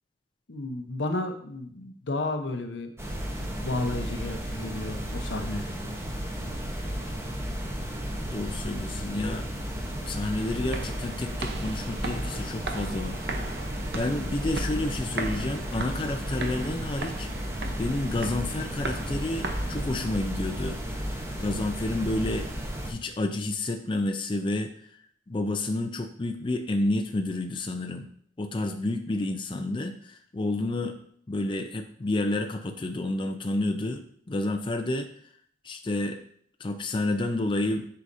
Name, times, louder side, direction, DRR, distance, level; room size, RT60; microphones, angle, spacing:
voice 1, 0.5-2.9 3.6-5.7, left 2 dB, 85° left, 6 dB, 0.8 m, -32 dB
sound 1, 3.0-22.9, equal, 15° right, 0.8 m, -33 dB
voice 2, 8.3-9.5 10.1-13.5 13.9-17.3 17.8-22.5 22.9-24.7 25.3-28.1 28.4-31.0 31.3-35.1 35.6-36.2 36.6-37.9, left 2 dB, 30° left, 5 dB, 0.5 m, -30 dB
sound 2, 10.2-20.2, right 3 dB, 65° right, 0.8 m, -39 dB
8.1 x 5.7 x 2.6 m, 0.63 s
head